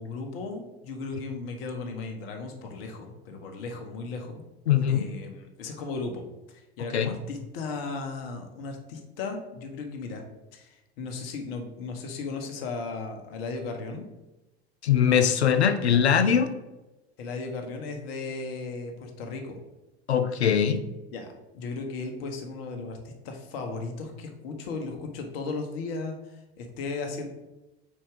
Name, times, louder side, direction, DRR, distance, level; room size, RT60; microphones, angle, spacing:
voice 1, 0.0-4.4 4.9-6.2 6.5-10.2 10.5-14.1 17.2-19.6 21.1-21.3 21.5-27.3, left 3 dB, 65° left, 4 dB, 1.1 m, -36 dB
voice 2, 4.7-5.1 6.9-7.1 14.8-16.5 20.1-20.8, left 8 dB, 85° left, 10 dB, 0.6 m, -21 dB
4.4 x 4.4 x 4.9 m, 1.0 s
figure-of-eight pair, 70°, 32 cm